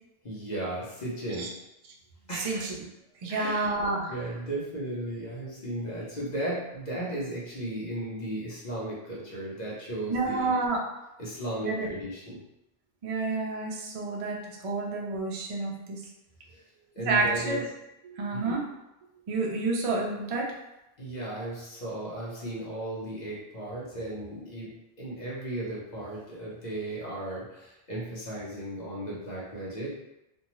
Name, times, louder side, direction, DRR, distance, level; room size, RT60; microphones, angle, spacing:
voice 1, 0.2-1.5 2.3-2.7 3.3-3.6 4.1-10.5 11.2-12.4 16.5-16.6 16.9-17.6 18.3-18.6 21.0-24.7 25.0-30.0, right 1 dB, 45° left, -5 dB, 0.8 m, -35 dB
voice 2, 2.3-2.9 3.2-4.1 10.1-10.9 11.6-11.9 13.0-16.0 17.0-17.6 18.0-18.6 19.3-20.5, right 3 dB, 45° right, -1 dB, 0.4 m, -29 dB
2.6 x 2.3 x 3.0 m, 0.92 s
omnidirectional pair, 1.1 m